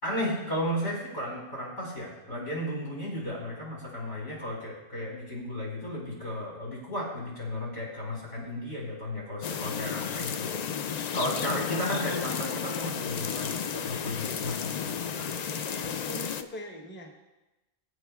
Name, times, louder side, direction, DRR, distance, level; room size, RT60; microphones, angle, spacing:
voice 1, 0.0-15.3, equal, 85° left, -5 dB, 5.1 m, -34 dB
sound 1, 9.4-16.4, left 7 dB, 60° left, 0.4 m, -33 dB
voice 2, 15.4-17.2, left 1 dB, 10° left, 1 dB, 0.9 m, -43 dB
21.5 x 8.2 x 2.4 m, 1.0 s
omnidirectional pair, 1.1 m